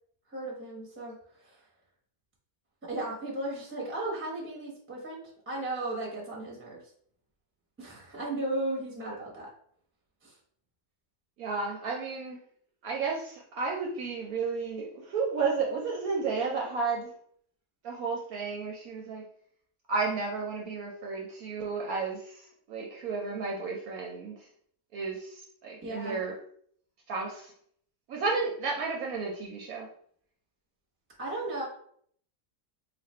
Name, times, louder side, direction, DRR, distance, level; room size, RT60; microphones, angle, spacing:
voice 1, 0.3-1.6 2.8-6.8 7.8-9.5 10.2-10.4 25.8-26.2 31.2-31.6, right 2 dB, 10° right, -3 dB, 0.7 m, -35 dB
voice 2, 11.4-12.4 12.8-17.1 17.8-19.2 19.9-24.5 24.9-26.3 27.1-27.5 28.1-29.9, right 4 dB, 70° right, 0 dB, 0.9 m, -32 dB
2.8 x 2.5 x 4.2 m, 0.63 s
omnidirectional pair, 1.8 m